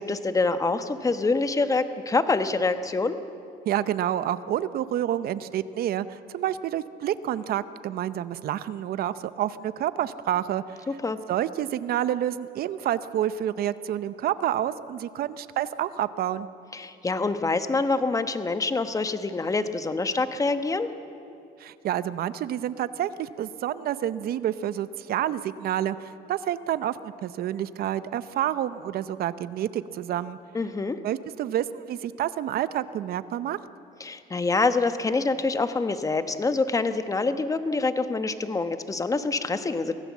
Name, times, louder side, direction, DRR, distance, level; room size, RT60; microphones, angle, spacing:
voice 1, 0.0-3.2 10.9-11.2 16.7-20.9 30.5-31.0 34.0-39.9, left 3 dB, 20° left, 10 dB, 1.1 m, -26 dB
voice 2, 3.7-10.8 11.3-16.5 21.6-30.4 31.0-33.6, right 11 dB, 65° right, 14 dB, 0.8 m, -29 dB
24.0 x 16.5 x 7.4 m, 2.6 s
cardioid pair, 110°, 17 cm